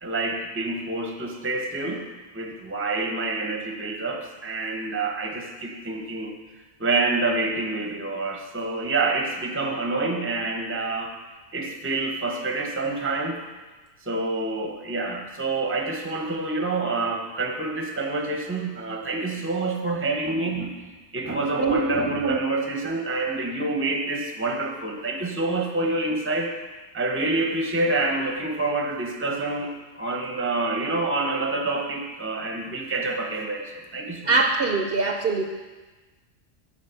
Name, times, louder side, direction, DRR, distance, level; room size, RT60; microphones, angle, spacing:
voice 1, 0.0-2.0 2.3-6.3 6.8-11.2 11.5-13.4 14.1-20.7 21.1-26.5 26.9-34.3, right 2 dB, 10° right, 3 dB, 0.7 m, -27 dB
voice 2, 21.6-22.6 34.3-35.4, right 3 dB, 55° right, 4 dB, 0.8 m, -24 dB
8.4 x 5.1 x 6.9 m, 1.2 s
omnidirectional pair, 1.3 m